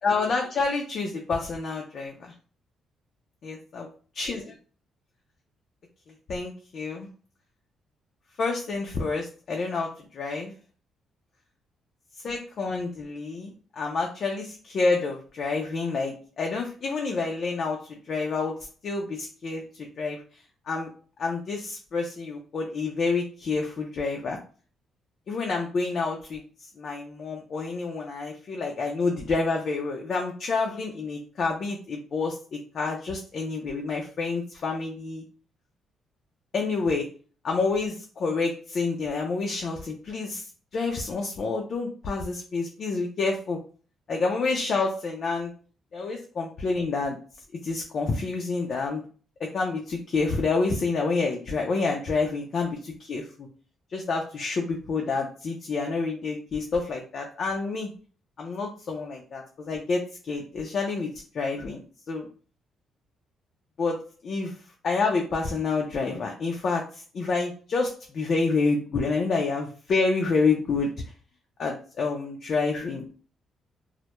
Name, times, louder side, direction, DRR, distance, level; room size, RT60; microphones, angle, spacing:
voice 1, 0.0-2.3 3.4-3.9 4.2-4.4 6.3-7.1 8.4-10.5 12.2-13.5 13.8-18.5 18.8-19.6 20.0-20.2 20.7-20.9 21.2-24.4 25.3-26.4 26.8-35.2 36.5-37.1 37.4-40.5 40.7-43.6 44.1-45.5 45.9-47.2 47.6-49.0 49.4-53.5 53.9-57.9 58.4-60.0 60.3-61.8 62.1-62.3 63.8-64.5 64.8-70.9 71.6-73.0, left 4 dB, 55° left, 0 dB, 0.4 m, -28 dB
2.1 x 2.0 x 2.9 m, 0.39 s
cardioid pair, 90°, 0 cm